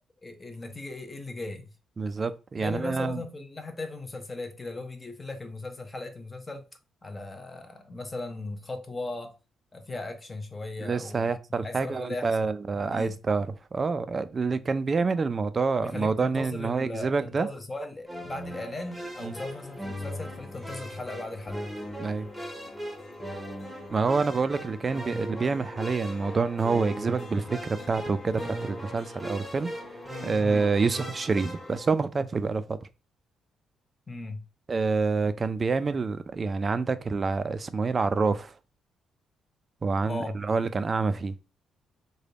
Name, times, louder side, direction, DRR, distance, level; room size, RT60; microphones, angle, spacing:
voice 1, 0.2-1.7 2.6-6.7 7.0-9.4 9.7-11.3 11.6-13.2 15.8-21.7 30.4-30.7 34.1-34.4 40.0-40.4, left 2 dB, 25° left, 0.7 m, -38 dB
voice 2, 2.0-3.2 10.8-17.5 19.2-19.4 22.0-22.3 23.9-27.6 27.9-29.7 30.2-32.9 34.7-38.6 39.8-41.3, right 4 dB, 35° right, 0.4 m, -27 dB
sound 1, 18.1-31.8, equal, 5° right, 0.9 m, -39 dB
sound 2, 18.4-31.9, left 3 dB, 50° left, 1.2 m, -47 dB
3.3 x 2.2 x 3.8 m
cardioid pair, 90°, 0 cm